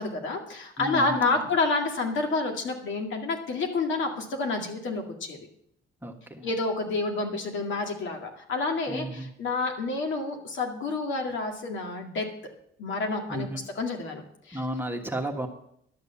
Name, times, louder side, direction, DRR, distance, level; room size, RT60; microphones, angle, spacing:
voice 1, 0.0-5.4 6.4-12.3 12.8-14.6, left 3 dB, 70° left, 3 dB, 2.1 m, -29 dB
voice 2, 0.8-1.4 6.0-6.4 8.9-9.3 13.3-13.6 14.5-15.5, right 1 dB, 10° right, 3 dB, 1.5 m, -33 dB
11.5 x 6.7 x 7.0 m, 0.71 s
cardioid pair, 90°, 20 cm